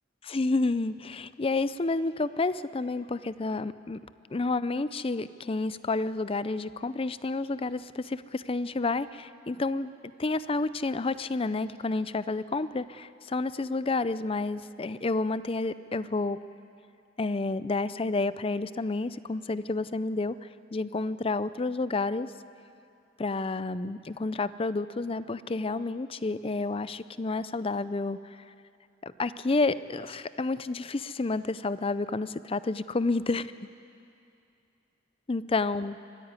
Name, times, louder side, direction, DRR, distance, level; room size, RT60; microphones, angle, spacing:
voice 1, 0.2-4.0 4.3-9.9 10.2-16.4 17.2-20.4 20.7-22.3 23.2-28.4 29.0-33.5 35.3-36.0, left 3 dB, 30° left, 15 dB, 0.5 m, -30 dB
24.0 x 14.5 x 9.6 m, 2.6 s
head